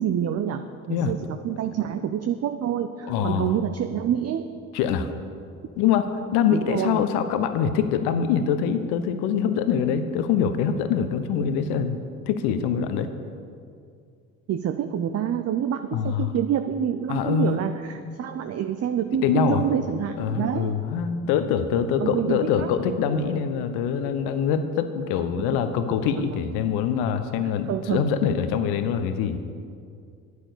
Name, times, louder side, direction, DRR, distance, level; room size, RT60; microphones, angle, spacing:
voice 1, 0.0-4.5 6.5-7.0 14.5-20.8 22.0-22.7 25.4-25.5 27.4-28.1, right 9 dB, 35° right, 8 dB, 0.7 m, -27 dB
voice 2, 3.1-3.5 4.7-5.1 5.8-12.0 12.3-13.1 15.9-16.3 17.1-17.6 19.2-19.6 20.2-29.4, left 7 dB, 65° left, 9 dB, 1.0 m, -24 dB
10.5 x 9.4 x 6.8 m, 2.3 s
hypercardioid pair, 55°, 42 cm